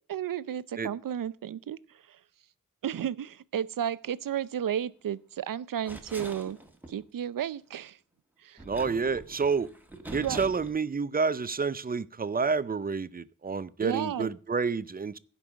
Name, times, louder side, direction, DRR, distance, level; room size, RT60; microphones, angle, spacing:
voice 1, 0.1-1.8 2.1-2.2 2.8-6.6 6.9-8.0 8.4-8.6 10.1-10.4 13.8-14.3, right 9 dB, 80° right, 0.6 m, -33 dB
sound 1, 5.8-7.0 8.6-10.8, right 1 dB, 5° right, 1.6 m, -44 dB
voice 2, 8.6-9.7 10.1-15.2, right 5 dB, 30° right, 0.5 m, -29 dB
16.0 x 5.4 x 6.2 m
wide cardioid pair, 100°, 32 cm